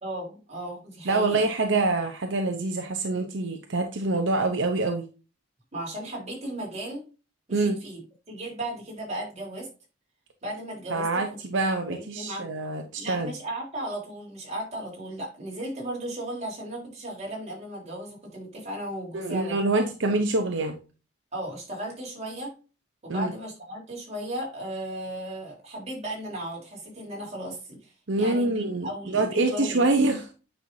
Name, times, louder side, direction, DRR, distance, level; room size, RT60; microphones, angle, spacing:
voice 1, 0.0-1.4 5.7-7.0 7.5-8.0 8.3-9.7 10.4-11.1 11.5-12.5 13.0-19.8 21.3-22.5 23.0-29.8, right 1 dB, 40° right, -3 dB, 4.0 m, -36 dB
voice 2, 1.0-5.1 7.5-7.8 10.9-13.3 19.1-20.8 23.1-23.3 28.1-30.2, right 2 dB, 75° right, 5 dB, 0.9 m, -25 dB
9.0 x 5.7 x 2.7 m, 0.33 s
head